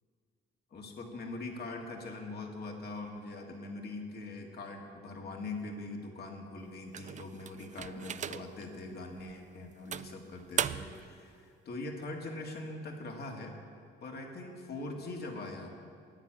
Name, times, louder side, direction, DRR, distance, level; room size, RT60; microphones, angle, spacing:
voice 1, 0.7-13.6 14.0-15.8, left 2 dB, 55° left, 1 dB, 2.0 m, -42 dB
sound 1, 6.9-8.7 9.2-9.3 9.9-11.1, right 9 dB, 40° right, 0.4 m, -37 dB
9.9 x 8.9 x 8.8 m, 2.2 s
cardioid pair, 90°, 20 cm